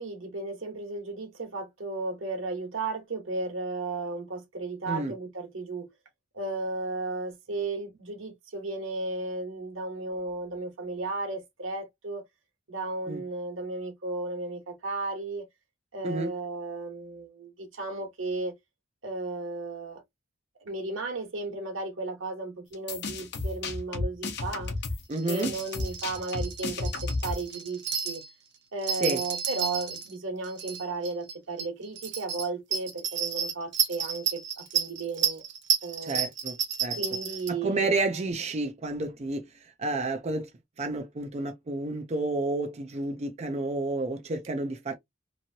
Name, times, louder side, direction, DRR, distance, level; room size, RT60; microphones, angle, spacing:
voice 1, 0.0-5.9 6.3-12.2 12.7-15.4 15.9-18.5 19.0-20.0 20.6-24.7 25.3-28.2 28.7-35.4 35.8-36.2 37.0-37.9, right 3 dB, 90° right, 1.2 m, -34 dB
sound 1, 22.7-27.5, left 3 dB, 60° left, 0.8 m, -32 dB
voice 2, 25.1-25.5 29.0-29.2 36.0-36.5 36.8-37.0 37.5-39.4 39.8-40.5 40.8-44.9, right 2 dB, 35° right, 0.5 m, -30 dB
sound 2, 25.1-28.3 28.8-30.1 30.4-31.3 31.6-31.7 32.0-37.5, right 7 dB, 60° right, 0.9 m, -31 dB
3.0 x 2.7 x 2.7 m
head